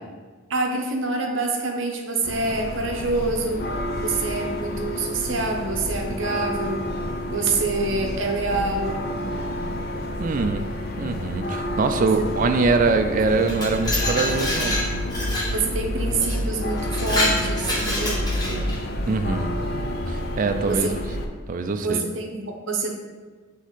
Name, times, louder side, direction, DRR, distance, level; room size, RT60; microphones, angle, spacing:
voice 1, 0.5-3.6 4.0-6.8 7.3-9.0 11.9-12.5 15.5-18.7 20.6-20.9 21.8-22.9, right 3 dB, 60° right, 2 dB, 0.8 m, -26 dB
sound 1, 2.2-21.3, left 1 dB, 45° left, 0.5 m, -29 dB
voice 2, 10.2-10.7 11.0-14.9 19.1-19.5 20.1-20.9 21.5-22.0, right 3 dB, 35° right, 7 dB, 0.3 m, -23 dB
Glass, 13.3-15.6 16.2-16.4 16.8-18.8, left 1 dB, 20° left, 0.9 m, -27 dB
8.0 x 3.0 x 4.1 m, 1.4 s
head